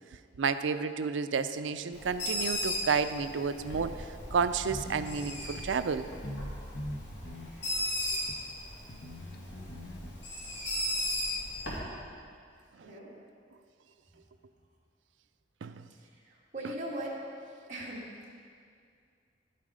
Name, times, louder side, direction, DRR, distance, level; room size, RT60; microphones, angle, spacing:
voice 1, 0.4-6.1 15.6-15.8, right 5 dB, 85° right, 11 dB, 0.5 m, -31 dB
Bird, 1.9-11.8, left 1 dB, 75° left, 2.8 m, -37 dB
sound 1, 4.6-5.1 5.6-5.7 6.2-6.5 6.7-7.5 8.3-8.4 8.9-10.1, left 1 dB, 60° left, 1.0 m, -41 dB
voice 2, 12.8-13.2 15.9-17.2 17.7-18.3, right 1 dB, 40° right, -6 dB, 2.0 m, -40 dB
11.5 x 7.5 x 5.0 m, 2.2 s
head